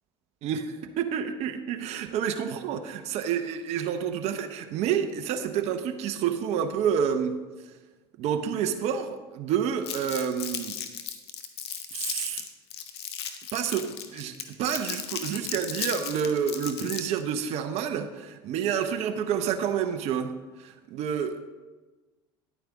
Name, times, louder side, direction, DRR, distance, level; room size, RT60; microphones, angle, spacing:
voice 1, 0.4-7.4 8.2-10.8 11.9-12.4 13.5-14.3 14.6-20.3 20.6-21.4, right 8 dB, 55° right, 7 dB, 0.8 m, -29 dB
Crumpling crinkling, 9.8-17.2, left 9 dB, 85° left, 0.9 m, -35 dB
10.5 x 9.2 x 3.6 m, 1.2 s
hypercardioid pair, 80°, 13 cm